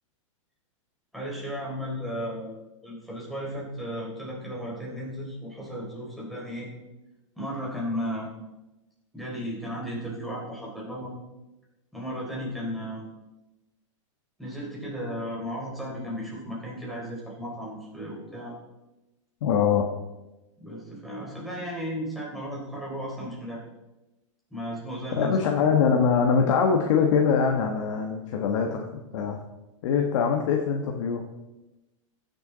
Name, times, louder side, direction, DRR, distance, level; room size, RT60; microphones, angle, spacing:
voice 1, 1.1-2.5 2.8-6.7 7.4-8.3 9.1-11.1 11.9-13.0 14.4-18.6 20.6-23.6 24.5-25.4, equal, ahead, -5 dB, 3.9 m, -34 dB
voice 2, 19.4-19.8 25.2-29.4 29.8-31.2, left 6 dB, 65° left, 2 dB, 1.3 m, -23 dB
15.0 x 6.9 x 3.9 m, 1.0 s
hypercardioid pair, 135°, 17 cm